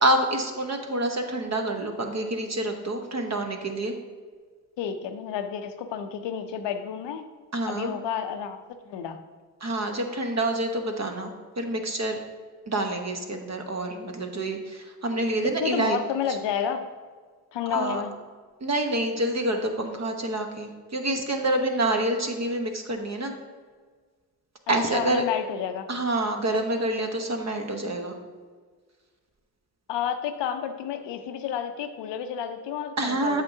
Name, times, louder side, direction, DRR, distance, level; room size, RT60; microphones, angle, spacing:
voice 1, 0.0-3.9 7.5-7.9 9.6-12.2 12.7-16.0 17.7-18.0 18.6-23.3 24.7-25.2 25.9-28.1 33.0-33.4, right 1 dB, 40° right, 4 dB, 1.0 m, -27 dB
voice 2, 4.8-7.2 7.6-8.6 8.9-9.2 15.6-16.9 17.5-18.1 24.9-25.9 29.9-33.4, left 8 dB, 80° left, 8 dB, 0.6 m, -30 dB
7.9 x 5.1 x 2.7 m, 1.5 s
supercardioid pair, 45°, 42 cm